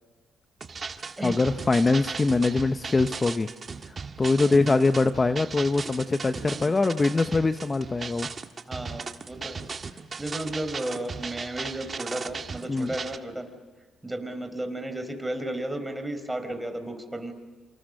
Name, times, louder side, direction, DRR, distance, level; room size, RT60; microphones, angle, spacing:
sound 1, 0.6-13.2, right 5 dB, 35° right, 1.6 m, -37 dB
voice 1, 1.2-3.5 4.2-8.3 12.7-12.9, left 3 dB, 25° left, 9 dB, 1.0 m, -23 dB
voice 2, 4.4-4.8 6.4-6.7 8.7-13.5 14.0-17.3, right 1 dB, 10° right, 7 dB, 4.6 m, -34 dB
27.5 x 26.5 x 6.6 m, 1.4 s
supercardioid pair, 80°, 0 cm